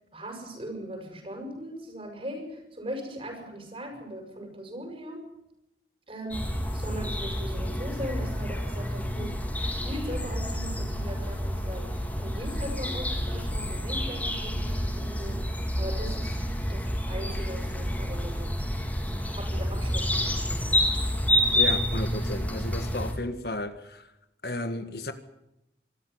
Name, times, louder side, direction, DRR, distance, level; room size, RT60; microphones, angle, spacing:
voice 1, 0.1-5.2 6.1-6.5 6.7-9.4 9.8-16.4 16.7-18.6 19.3-20.8, equal, 30° right, 6.7 m, -39 dB
sound 1, 6.3-23.1, equal, 10° left, 3.7 m, -29 dB
voice 2, 21.5-24.1 24.4-25.1, left 2 dB, 60° left, 1.7 m, -33 dB
24.5 x 13.5 x 9.5 m
head